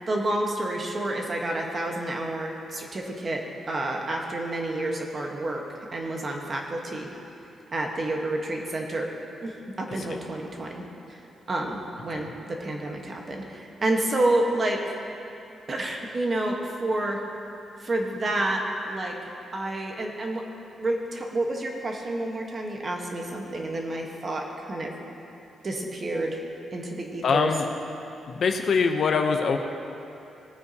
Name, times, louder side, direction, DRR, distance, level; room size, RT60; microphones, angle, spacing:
voice 1, 0.1-3.4 3.7-5.6 5.9-7.1 7.7-9.1 9.4-10.8 11.1-11.2 11.5-14.9 15.7-17.2 17.8-19.2 19.5-20.4 20.8-24.9 25.6-26.4 26.7-27.5, right 1 dB, 30° right, 1 dB, 1.2 m, -29 dB
voice 2, 27.2-27.7 28.3-29.6, left 5 dB, 50° left, 5 dB, 0.7 m, -24 dB
19.5 x 9.2 x 2.8 m, 2.7 s
wide cardioid pair, 160°, 0 cm